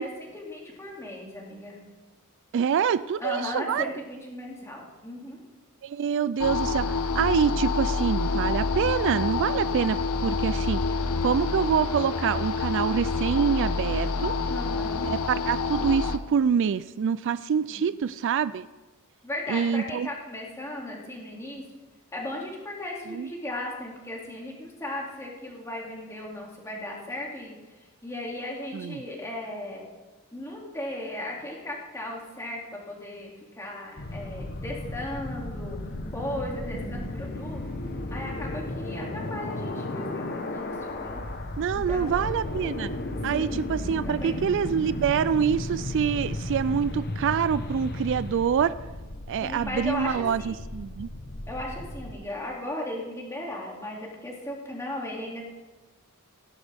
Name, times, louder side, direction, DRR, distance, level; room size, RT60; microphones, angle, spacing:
voice 1, 0.0-1.8 3.2-5.4 10.8-11.2 14.5-15.1 17.7-17.8 19.2-21.6 22.1-27.5 28.0-29.9 30.3-35.8 36.1-37.6 38.1-41.2 41.7-42.2 43.3-43.6 44.0-44.4 49.4-50.6 51.5-55.5, left 1 dB, 15° left, -2 dB, 2.5 m, -36 dB
voice 2, 2.5-3.9 5.8-10.8 11.2-14.4 15.0-18.7 19.5-20.1 23.1-23.3 28.7-29.0 36.9-37.1 41.6-42.9 43.2-48.8 49.3-51.1, right 7 dB, 55° right, 15 dB, 0.3 m, -26 dB
sound 1, 6.4-16.2, left 4 dB, 90° left, 0.8 m, -27 dB
sound 2, 34.0-52.2, left 1 dB, 45° left, 1.0 m, -34 dB
16.5 x 11.5 x 3.5 m, 1.2 s
head